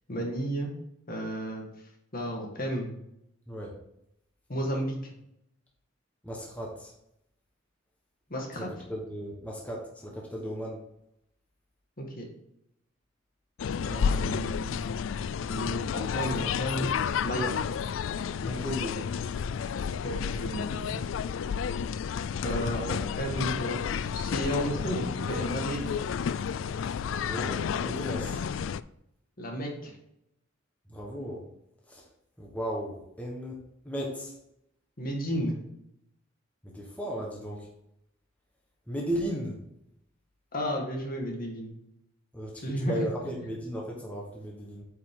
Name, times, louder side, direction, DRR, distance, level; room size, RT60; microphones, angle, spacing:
voice 1, 0.1-0.7 1.1-1.6 2.1-2.9 4.5-5.0 8.3-8.7 12.0-12.2 13.8-14.8 15.5-16.9 17.2-17.6 20.0-20.9 22.4-25.8 29.4-29.9 35.0-35.6 40.5-41.7 42.6-43.0, equal, 45° left, 0 dB, 2.0 m, -32 dB
voice 2, 6.2-6.9 8.6-10.8 18.4-19.0 27.0-28.4 30.9-31.4 31.9-32.0 32.4-34.3 36.6-37.7 38.9-39.6 42.3-44.8, equal, 5° left, -3 dB, 1.4 m, -36 dB
sound 1, 13.6-28.8, left 7 dB, 75° left, 0.3 m, -31 dB
9.1 x 5.2 x 3.9 m, 0.78 s
head